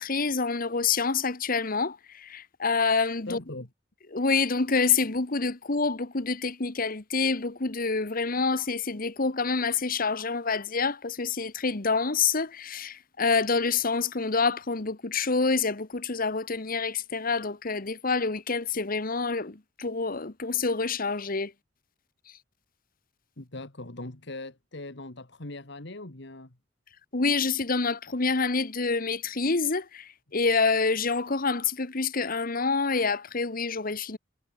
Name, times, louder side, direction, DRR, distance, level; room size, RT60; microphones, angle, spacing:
voice 1, 0.0-3.4 4.1-21.5 27.1-34.2, left 4 dB, 50° left, 1.4 m, -27 dB
voice 2, 3.3-3.7 23.4-26.5, left 2 dB, 65° left, 2.2 m, -40 dB
head